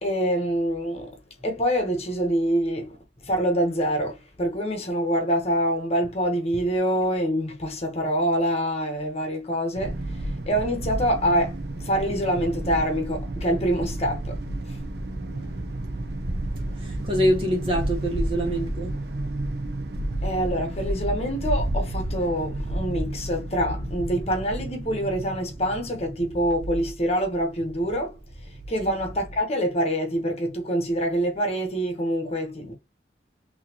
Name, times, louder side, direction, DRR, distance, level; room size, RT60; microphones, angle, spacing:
voice 1, 0.0-3.0 3.2-14.8 20.2-32.7, equal, 35° left, 1.1 m, -26 dB
sound 1, 9.7-29.4, right 1 dB, 65° right, 0.6 m, -31 dB
voice 2, 15.0-18.9 28.8-28.9, equal, 30° right, 1.8 m, -27 dB
4.0 x 2.9 x 2.9 m
head